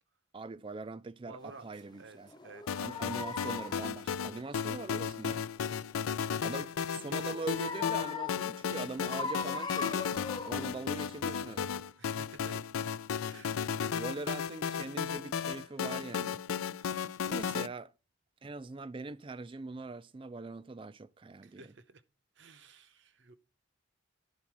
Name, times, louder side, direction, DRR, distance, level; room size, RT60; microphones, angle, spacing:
voice 1, 0.3-2.3 2.8-5.5 6.4-11.7 13.9-16.4 17.3-17.9 18.4-21.7, right 3 dB, 25° right, 0.3 m, -42 dB
voice 2, 1.3-3.2 6.4-6.5 12.0-12.6 13.3-14.0 21.4-22.0 22.4-23.5, right 3 dB, 60° right, 0.8 m, -53 dB
sound 1, 2.3-3.9 7.1-8.6 9.0-10.9 11.4-11.5, left 5 dB, 20° left, 0.6 m, -39 dB
sound 2, 2.7-17.7, left 7 dB, 85° left, 0.4 m, -35 dB
11.5 x 4.0 x 6.0 m
head